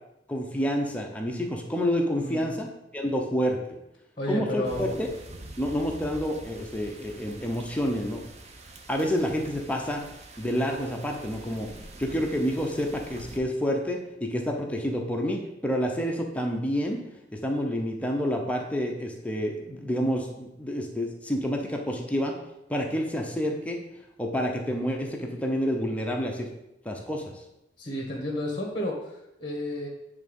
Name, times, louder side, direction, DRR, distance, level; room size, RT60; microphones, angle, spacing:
voice 1, 0.3-2.7 2.9-3.6 4.3-5.1 5.6-8.2 8.9-10.0 10.4-11.7 12.0-17.0 17.3-22.4 22.7-23.8 24.2-26.5 26.8-27.2, equal, 5° left, 1 dB, 0.8 m, -28 dB
voice 2, 2.2-2.6 4.2-5.0 27.8-29.9, left 1 dB, 25° left, -1 dB, 1.5 m, -32 dB
sound 1, 4.6-13.4, right 2 dB, 35° right, 0.8 m, -45 dB
9.1 x 3.6 x 5.3 m, 0.87 s
head